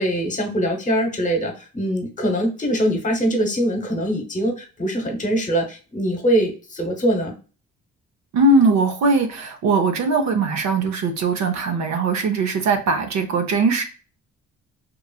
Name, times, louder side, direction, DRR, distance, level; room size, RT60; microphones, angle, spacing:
voice 1, 0.0-7.3, right 1 dB, 25° left, 3 dB, 1.0 m, -23 dB
voice 2, 8.3-13.9, right 3 dB, 65° right, 6 dB, 0.6 m, -20 dB
3.1 x 2.3 x 2.3 m, 0.35 s
cardioid pair, 90°, 30 cm